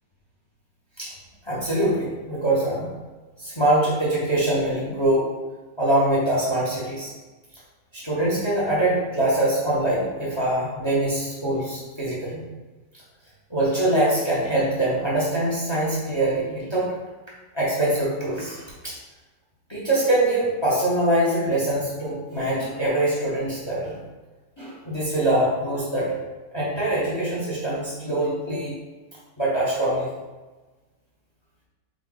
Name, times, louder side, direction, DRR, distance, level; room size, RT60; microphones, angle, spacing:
voice 1, 1.4-2.9 3.4-5.3 5.8-7.1 7.9-12.4 13.5-16.9 17.5-19.0 19.7-24.0 24.6-26.1 26.5-28.7 29.4-30.1, right 1 dB, 30° left, -6 dB, 0.5 m, -23 dB
4.8 x 2.3 x 3.7 m, 1.2 s
omnidirectional pair, 1.9 m